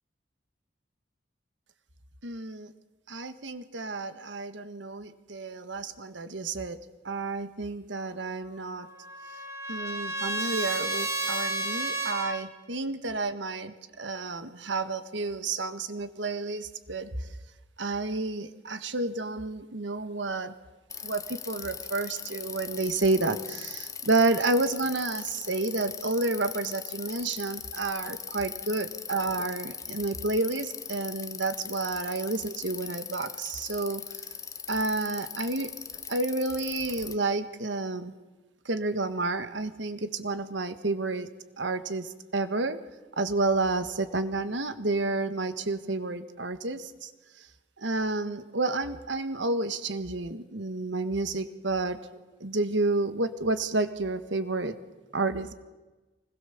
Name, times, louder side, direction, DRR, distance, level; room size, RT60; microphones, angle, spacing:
voice 1, 2.2-2.7 3.1-6.8 7.0-8.9 9.7-17.3 17.8-20.5 21.0-34.2 34.7-35.7 36.1-38.1 38.6-41.3 41.6-42.8 43.2-47.1 47.4-47.5 47.8-52.0 52.4-54.7 55.1-55.5, right 2 dB, 80° right, 11 dB, 1.5 m, -30 dB
Trumpet, 8.6-12.4, right 1 dB, 15° right, 1.6 m, -32 dB
Bicycle, 20.9-37.1, left 7 dB, 15° left, 0.8 m, -40 dB
25.0 x 20.0 x 7.1 m, 1.2 s
head